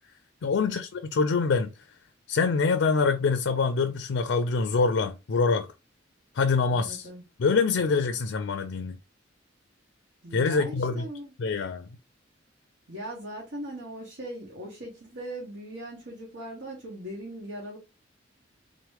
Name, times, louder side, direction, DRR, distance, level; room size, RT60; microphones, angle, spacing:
voice 1, 0.4-1.7 2.3-5.7 6.3-7.1 7.4-9.0 10.3-11.1 11.4-11.9, left 4 dB, 75° left, 0.4 m, -25 dB
voice 2, 6.7-7.2 10.2-11.3 12.9-17.8, right 1 dB, 85° right, 1.5 m, -39 dB
3.9 x 3.0 x 3.3 m
head